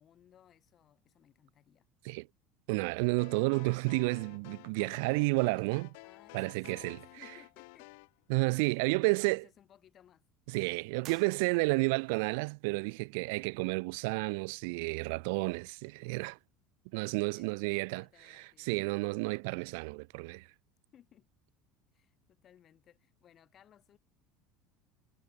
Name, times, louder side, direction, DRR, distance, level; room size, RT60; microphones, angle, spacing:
voice 1, 0.0-1.9 6.0-7.9 8.5-10.2 17.3-18.9 20.9-21.3 21.9-24.0, left 10 dB, 30° left, 3.7 m, -62 dB
voice 2, 2.7-5.9 6.3-7.0 8.3-9.4 10.5-16.4 16.9-18.0 18.6-20.5, right 30 dB, 75° right, 0.3 m, -31 dB
sound 1, 3.2-8.1, left 28 dB, 75° left, 1.0 m, -53 dB
sound 2, 11.0-12.1, right 14 dB, 40° right, 2.2 m, -52 dB
cardioid pair, 155°, 0 cm